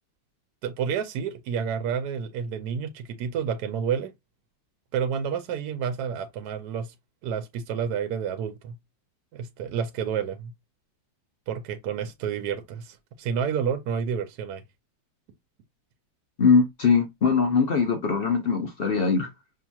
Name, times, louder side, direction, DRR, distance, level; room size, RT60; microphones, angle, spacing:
voice 1, 0.6-4.1 4.9-6.9 7.2-8.7 9.3-10.5 11.5-14.6, right 7 dB, 70° right, 1.1 m, -30 dB
voice 2, 16.4-19.3, left 5 dB, 55° left, 0.6 m, -21 dB
5.8 x 2.9 x 2.3 m
omnidirectional pair, 2.0 m